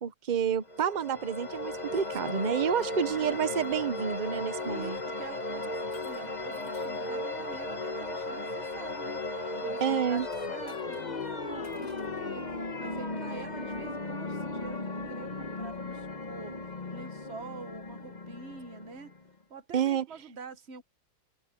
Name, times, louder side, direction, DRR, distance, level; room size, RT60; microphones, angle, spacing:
voice 1, 0.0-5.0 9.8-10.3 19.7-20.1, right 8 dB, 75° right, 0.4 m, -29 dB
sound 1, 0.7-19.3, left 2 dB, 25° left, 1.5 m, -36 dB
Shatter, 2.4-3.8 4.4-4.7 5.9-7.1 10.2-11.3 11.6-12.3, left 4 dB, 60° left, 3.5 m, -59 dB
voice 2, 2.9-3.6 4.6-10.2 10.5-16.6 16.9-19.1 19.5-20.8, right 5 dB, 40° right, 1.3 m, -46 dB
open air
omnidirectional pair, 2.0 m